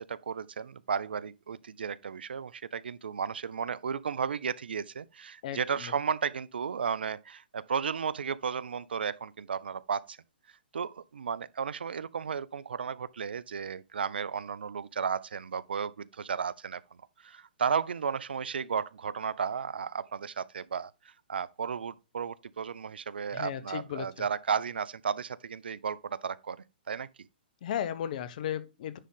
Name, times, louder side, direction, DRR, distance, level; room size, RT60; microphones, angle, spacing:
voice 1, 0.0-10.2 10.7-16.8 17.2-20.9 21.3-26.6 26.9-27.1, right 6 dB, 75° right, 0.5 m, -34 dB
voice 2, 5.4-5.9 23.3-24.1 27.6-29.0, left 10 dB, 50° left, 1.0 m, -35 dB
10.0 x 3.8 x 3.8 m
hypercardioid pair, 130°, 5 cm